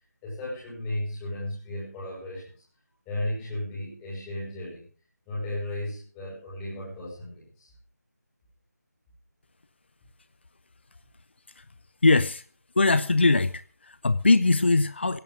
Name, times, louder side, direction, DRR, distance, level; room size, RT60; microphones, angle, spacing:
voice 1, 0.0-2.6 3.1-4.9 5.3-7.7, left 1 dB, 10° left, -5 dB, 5.7 m, -35 dB
voice 2, 12.0-12.4 12.8-15.2, left 3 dB, 40° left, 15 dB, 0.7 m, -21 dB
17.0 x 16.5 x 3.8 m, 0.36 s
figure-of-eight pair, 165°, 9 cm